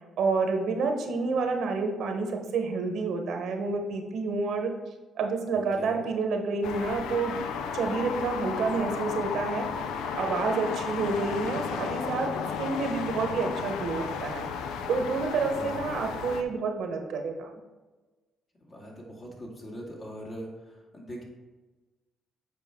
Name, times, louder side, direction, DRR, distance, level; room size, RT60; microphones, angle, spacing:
voice 1, 0.2-4.7 5.2-7.3 7.7-9.7 10.1-12.3 12.6-14.5 14.9-17.5, right 4 dB, 75° right, 4 dB, 1.0 m, -29 dB
voice 2, 5.5-6.0 15.3-16.1 18.6-21.2, equal, 40° left, -2 dB, 2.1 m, -42 dB
sound 1, 6.6-16.4, left 6 dB, 90° left, 0.5 m, -33 dB
7.8 x 4.9 x 3.6 m, 1.2 s
cardioid pair, 90°, 0 cm